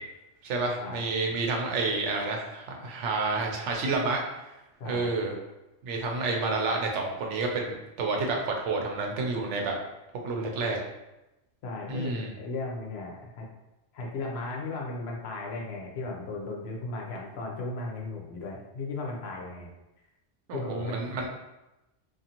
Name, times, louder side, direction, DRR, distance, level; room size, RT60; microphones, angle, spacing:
voice 1, 0.4-4.2 4.8-5.3 5.8-9.7 10.2-10.8 11.9-12.3 20.5-21.3, right 3 dB, 80° right, 1 dB, 0.9 m, -29 dB
voice 2, 4.8-5.1 11.6-13.5 13.9-19.7 20.5-21.0, left 2 dB, 65° left, -1 dB, 0.8 m, -36 dB
2.5 x 2.5 x 2.8 m, 0.96 s
omnidirectional pair, 1.2 m